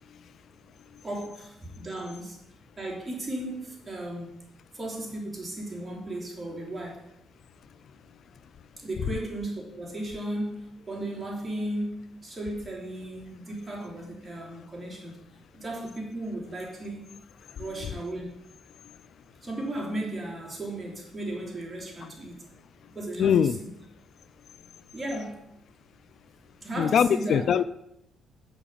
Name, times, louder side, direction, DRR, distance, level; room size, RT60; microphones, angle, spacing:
voice 1, 1.0-2.4 2.8-4.5 4.7-7.0 8.8-15.2 15.5-17.0 17.6-18.3 19.4-22.4 22.9-23.7 24.9-25.4 26.6-27.4, right 1 dB, 20° right, -2 dB, 3.3 m, -35 dB
voice 2, 23.2-23.6 26.8-27.6, left 8 dB, 65° left, 15 dB, 0.3 m, -22 dB
7.0 x 5.9 x 7.1 m, 0.83 s
cardioid pair, 90°, 0 cm